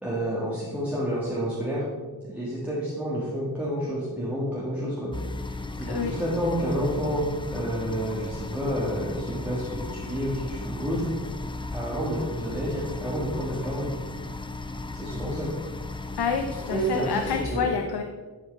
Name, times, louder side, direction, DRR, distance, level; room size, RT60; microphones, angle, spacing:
voice 1, 0.0-1.8 2.2-11.1 11.7-13.9 14.9-15.5 16.7-17.1 17.5-17.6, equal, 5° right, -7 dB, 1.4 m, -29 dB
sound 1, 5.1-17.5, left 2 dB, 15° left, 0.3 m, -36 dB
voice 2, 16.2-18.0, left 6 dB, 70° left, 5 dB, 0.6 m, -28 dB
10.5 x 4.6 x 3.2 m, 1.4 s
wide cardioid pair, 90°, 40 cm